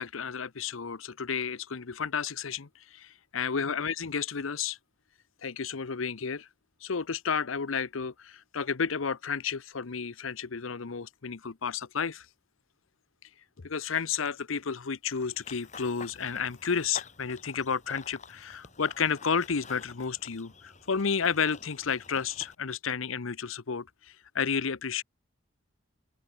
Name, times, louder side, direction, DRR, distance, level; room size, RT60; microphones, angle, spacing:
voice 1, 0.0-4.8 5.4-6.5 6.8-12.3 13.6-25.0, left 6 dB, 85° left, 0.8 m, -32 dB
Run / Bird vocalization bird call bird song, 15.1-22.5, left 4 dB, 35° left, 7.4 m, -49 dB
open air
head